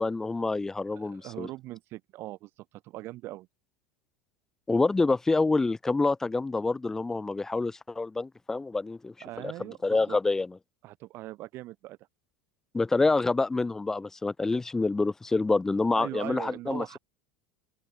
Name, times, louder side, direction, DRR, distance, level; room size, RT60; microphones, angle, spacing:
voice 1, 0.0-1.5 4.7-9.1 9.8-10.5 12.7-17.0, left 3 dB, 10° left, 0.4 m, -27 dB
voice 2, 0.9-3.5 9.2-10.2 10.8-12.0 15.9-17.0, right 17 dB, 45° right, 3.3 m, -40 dB
open air
supercardioid pair, 155°, 6 cm